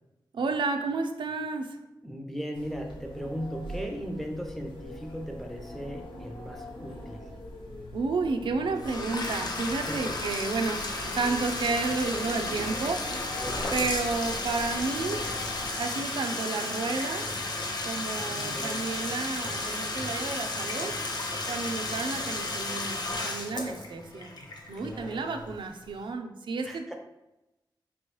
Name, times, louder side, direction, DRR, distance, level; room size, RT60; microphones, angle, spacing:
voice 1, 0.3-1.8 7.9-10.8 11.1-13.0 13.7-15.3 15.8-17.3 17.8-20.9 21.5-24.3 24.7-26.9, right 4 dB, 80° right, 5 dB, 0.4 m, -31 dB
voice 2, 2.0-7.3 9.9-10.1 13.4-13.9 16.0-16.3 18.2-18.8 24.7-25.5 26.6-26.9, equal, 5° left, 2 dB, 0.5 m, -38 dB
sound 1, 2.5-15.7, left 1 dB, 85° left, 0.8 m, -42 dB
Bathtub (filling or washing), 8.8-25.5, left 2 dB, 60° left, 0.6 m, -33 dB
4.3 x 3.0 x 3.1 m, 0.96 s
wide cardioid pair, 155°, 8 cm